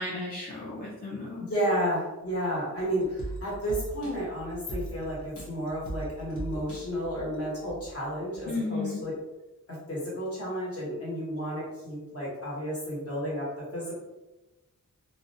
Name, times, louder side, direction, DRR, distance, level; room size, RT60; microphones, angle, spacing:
voice 1, 0.0-1.5 8.5-9.0, left 3 dB, 30° left, -5 dB, 0.4 m, -34 dB
voice 2, 1.4-9.1 9.7-13.9, equal, 45° left, -6 dB, 1.0 m, -32 dB
sound 1, 2.8-8.0 8.3-8.4, right 2 dB, 65° left, 0.8 m, -40 dB
2.4 x 2.1 x 2.6 m, 1.0 s
wide cardioid pair, 125°, 33 cm